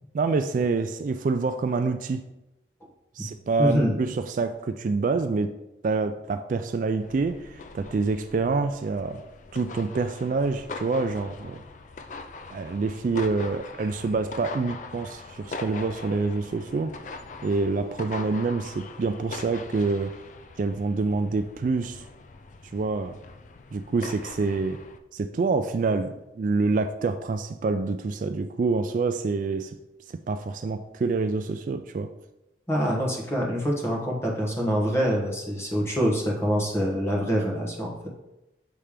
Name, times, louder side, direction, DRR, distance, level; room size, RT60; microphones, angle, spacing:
voice 1, 0.1-2.2 3.2-5.5 5.8-9.2 9.5-11.6 12.5-17.0 17.4-20.1 20.6-22.0 22.7-23.2 23.7-24.8 25.1-29.8 30.3-32.1, right 4 dB, 45° right, 9 dB, 0.3 m, -27 dB
voice 2, 3.6-4.0 32.7-37.9, equal, 15° left, -1 dB, 1.2 m, -25 dB
sound 1, 7.0-25.0, left 3 dB, 45° left, 0.4 m, -42 dB
7.2 x 3.3 x 5.0 m, 0.94 s
head